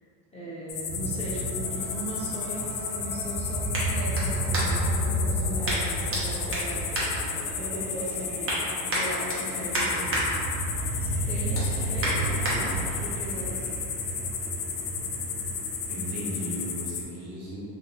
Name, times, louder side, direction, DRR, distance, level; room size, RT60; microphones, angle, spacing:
voice 1, 0.3-3.6 3.9-6.9 7.6-8.5 8.8-10.1 11.0-12.6 13.0-13.7, equal, 15° left, -9 dB, 0.7 m, -37 dB
sound 1, 0.7-17.0, left 6 dB, 90° left, 0.6 m, -33 dB
sound 2, 0.9-16.8, right 1 dB, 85° right, 0.7 m, -33 dB
sound 3, 3.7-5.0 5.6-6.2 6.5-7.8 8.2-8.6 8.9-10.2 10.7-10.9 11.3-12.6 13.1-13.2, right 1 dB, 30° right, 1.0 m, -32 dB
voice 2, 12.5-12.9 15.9-17.6, equal, 65° right, -7 dB, 1.2 m, -36 dB
3.2 x 2.7 x 2.8 m, 2.7 s
supercardioid pair, 115°, 42 cm